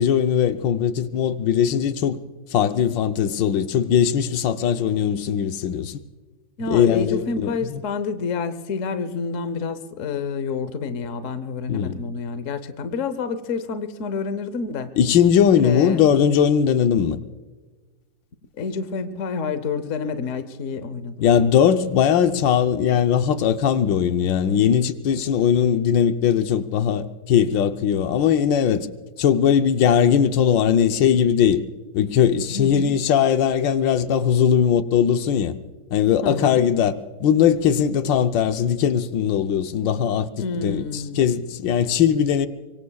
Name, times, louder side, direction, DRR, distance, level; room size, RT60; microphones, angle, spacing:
voice 1, 0.0-2.2 2.5-6.0 6.7-7.8 11.7-11.9 15.0-17.2 21.2-28.9 29.2-31.6 31.9-35.5 35.9-40.3 40.6-42.5, left 8 dB, 75° left, 1.4 m, -19 dB
voice 2, 6.6-14.9 15.6-16.0 18.6-21.4 32.5-32.9 36.2-36.6 40.4-41.3, left 5 dB, 50° left, 1.0 m, -28 dB
24.5 x 23.5 x 2.3 m
omnidirectional pair, 2.1 m